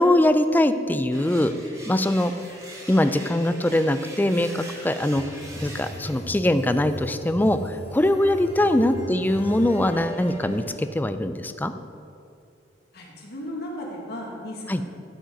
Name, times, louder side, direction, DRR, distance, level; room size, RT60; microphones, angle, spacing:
voice 1, 0.0-1.5 1.9-2.3 2.9-5.2 5.6-11.7 14.7-14.8, left 1 dB, 10° left, 10 dB, 0.4 m, -22 dB
sound 1, 1.1-6.1, right 1 dB, 15° right, 1.8 m, -42 dB
sound 2, 5.2-10.8, left 1 dB, 35° left, 0.9 m, -38 dB
voice 2, 12.9-15.0, left 1 dB, 60° left, -2 dB, 1.8 m, -36 dB
12.5 x 5.1 x 5.2 m, 2.5 s
head